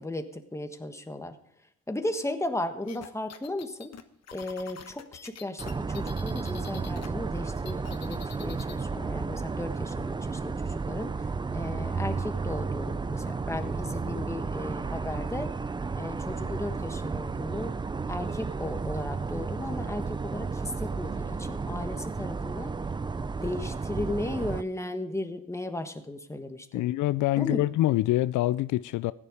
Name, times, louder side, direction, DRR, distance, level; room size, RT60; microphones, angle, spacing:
voice 1, 0.0-1.4 1.9-3.9 4.3-11.1 11.5-15.5 16.0-17.7 18.1-22.7 23.2-26.7 27.4-27.6, left 1 dB, 10° left, 1.4 m, -35 dB
sound 1, 2.9-7.1 7.4-8.8, left 8 dB, 60° left, 1.2 m, -46 dB
sound 2, 5.6-24.6, right 4 dB, 15° right, 0.4 m, -33 dB
voice 2, 26.7-29.1, left 16 dB, 80° left, 0.5 m, -25 dB
15.5 x 10.0 x 5.0 m
cardioid pair, 90°, 30 cm